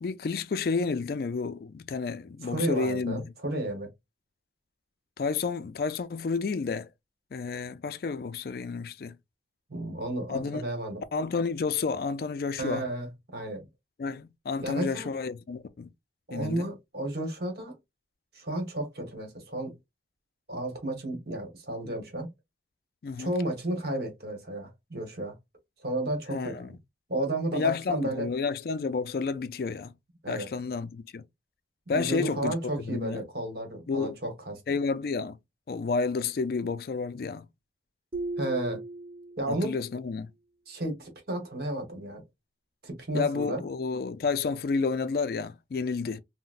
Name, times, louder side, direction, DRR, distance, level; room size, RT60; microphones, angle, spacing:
voice 1, 0.0-3.2 5.2-6.9 7.3-9.2 10.3-10.6 11.1-12.9 14.0-15.9 16.3-16.7 23.0-23.3 26.3-26.8 27.5-29.9 30.3-31.2 31.9-32.5 32.9-33.2 33.9-34.2 34.7-35.4 35.7-37.4 39.5-40.3 43.1-46.2, left 4 dB, 55° left, 0.3 m, -30 dB
voice 2, 2.4-3.9 9.7-11.0 12.6-13.6 14.6-15.1 16.3-17.7 18.3-19.7 20.5-22.3 23.2-25.3 25.8-26.8 27.1-28.3 30.2-30.5 31.9-34.6 38.4-38.8 39.4-39.7 40.7-42.2 42.8-43.6, right 1 dB, 55° right, 1.1 m, -32 dB
sound 1, 38.1-39.8, right 2 dB, 30° right, 0.4 m, -37 dB
3.8 x 2.1 x 2.4 m
head